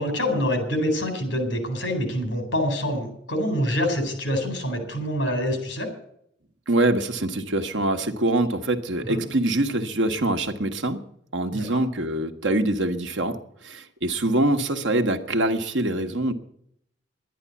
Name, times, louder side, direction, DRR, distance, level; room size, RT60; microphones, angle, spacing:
voice 1, 0.0-5.9 9.1-9.2 11.5-11.8, equal, 65° left, 6 dB, 4.1 m, -26 dB
voice 2, 6.7-11.0 11.3-13.4 13.6-16.3, right 2 dB, 75° right, 7 dB, 1.2 m, -24 dB
11.5 x 10.5 x 8.3 m, 0.71 s
head